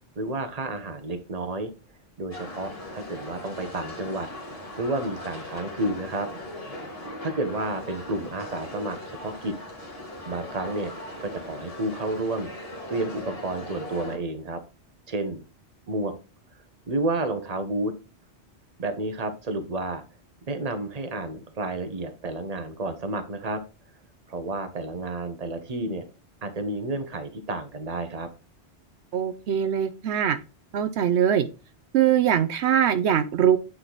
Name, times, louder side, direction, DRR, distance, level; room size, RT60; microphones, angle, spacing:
voice 1, 0.2-1.7 2.2-4.3 4.8-6.3 7.2-9.5 10.3-10.9 11.2-12.5 12.9-14.6 15.1-15.4 15.9-16.1 16.9-17.9 18.8-20.0 20.5-23.6 24.3-26.0 26.4-28.3, right 2 dB, 35° right, 8 dB, 1.1 m, -30 dB
sound 1, 2.3-14.2, left 1 dB, 30° left, 1.8 m, -39 dB
voice 2, 29.1-30.4 30.7-31.5 31.9-33.6, right 9 dB, 80° right, 11 dB, 0.9 m, -22 dB
8.8 x 3.8 x 3.9 m, 0.31 s
omnidirectional pair, 1.1 m